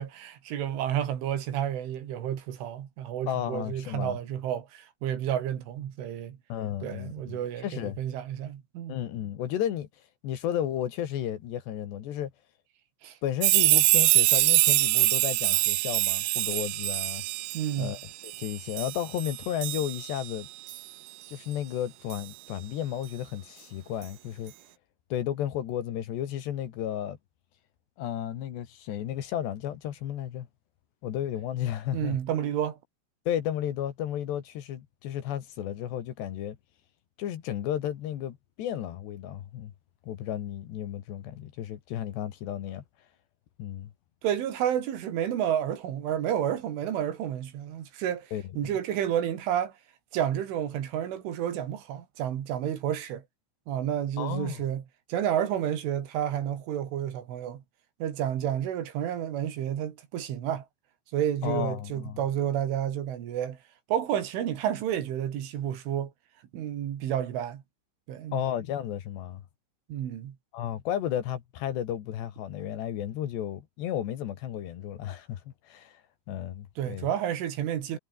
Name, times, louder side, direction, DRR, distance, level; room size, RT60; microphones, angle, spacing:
voice 1, 0.0-6.4 6.8-9.0 13.0-13.2 17.5-18.0 31.9-32.8 44.2-49.7 50.1-53.2 53.7-54.8 55.1-57.6 58.0-60.7 61.1-63.6 63.9-66.1 66.5-67.6 68.1-68.4 69.9-70.4 76.8-78.0, right 10 dB, 70° right, 4.9 m, -30 dB
voice 2, 3.3-4.2 6.5-8.0 8.9-9.9 10.2-12.3 13.2-17.2 17.8-20.5 21.3-24.5 25.1-27.2 28.0-30.5 31.0-32.2 33.3-36.6 37.2-39.7 40.1-42.8 43.6-43.9 48.3-48.8 54.2-54.6 61.4-62.2 68.3-69.4 70.5-76.0 76.3-77.1, left 11 dB, 65° left, 3.6 m, -33 dB
sound 1, 13.4-20.3 20.7-20.8 22.1-22.2, right 20 dB, 90° right, 3.4 m, -24 dB
omnidirectional pair, 5.8 m